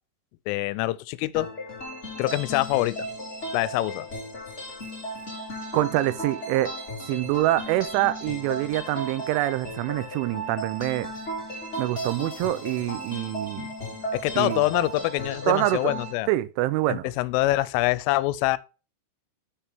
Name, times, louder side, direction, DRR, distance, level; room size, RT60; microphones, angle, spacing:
voice 1, 0.5-1.5 2.2-3.1 3.5-4.1 14.1-16.3 16.9-18.6, left 18 dB, 90° left, 3.1 m, -25 dB
sound 1, 1.3-16.1, right 1 dB, 60° left, 0.7 m, -35 dB
voice 2, 5.7-6.8 7.1-11.1 11.8-13.7 14.4-14.6 15.5-15.9 16.3-17.1, right 16 dB, 85° right, 2.9 m, -25 dB
7.4 x 6.7 x 3.4 m
omnidirectional pair, 5.7 m